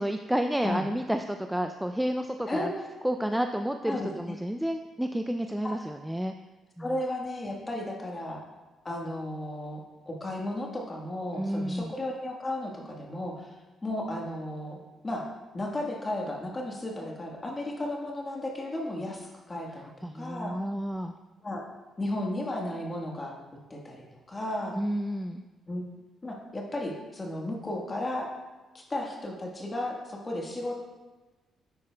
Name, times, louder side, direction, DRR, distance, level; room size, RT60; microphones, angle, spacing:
voice 1, 0.0-2.7 3.0-6.3 6.8-6.9 11.4-11.9 20.0-21.1 24.7-25.4, equal, 5° right, 6 dB, 0.3 m, -30 dB
voice 2, 6.8-8.4 8.8-13.5 13.8-14.8 15.0-15.3 15.5-20.6 21.4-21.6 22.0-23.3 23.7-24.8 25.7-25.9 26.2-28.3 28.7-30.8, left 1 dB, 25° left, 0 dB, 1.3 m, -34 dB
9.5 x 8.7 x 2.2 m, 1.2 s
cardioid pair, 90°, 0 cm